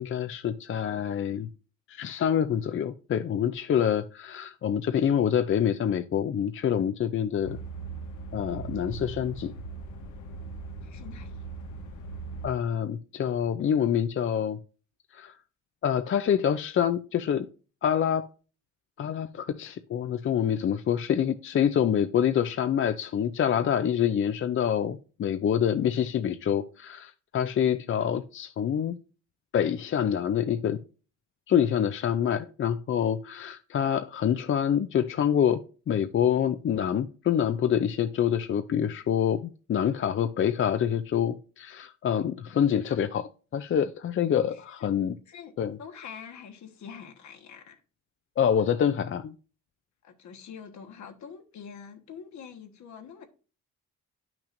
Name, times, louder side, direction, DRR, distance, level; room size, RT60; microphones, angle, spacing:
voice 1, 0.0-1.5 1.9-7.6 8.3-9.5 12.4-14.6 15.1-15.3 15.8-17.5 17.8-18.3 19.0-29.0 29.5-30.8 31.5-35.6 35.9-45.1 45.6-45.8 48.4-49.3, left 9 dB, 45° left, 0.5 m, -26 dB
sound 1, 7.4-12.5, right 4 dB, 90° left, 1.1 m, -39 dB
voice 2, 10.8-11.4 44.5-44.9 45.3-45.5 45.8-47.8 50.0-53.3, left 7 dB, 70° left, 1.4 m, -45 dB
10.5 x 6.0 x 2.6 m
cardioid pair, 90°, 30 cm